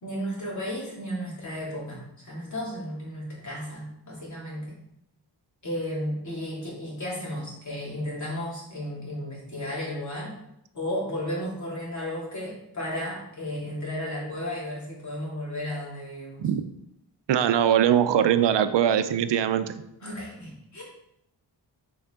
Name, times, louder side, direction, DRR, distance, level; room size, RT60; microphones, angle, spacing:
voice 1, 0.0-4.7 5.6-10.3 10.7-16.5 20.0-20.8, equal, 45° left, -5 dB, 2.7 m, -34 dB
voice 2, 17.3-19.7, right 9 dB, 85° right, 11 dB, 0.6 m, -21 dB
7.0 x 4.6 x 3.7 m, 0.81 s
wide cardioid pair, 130°, 41 cm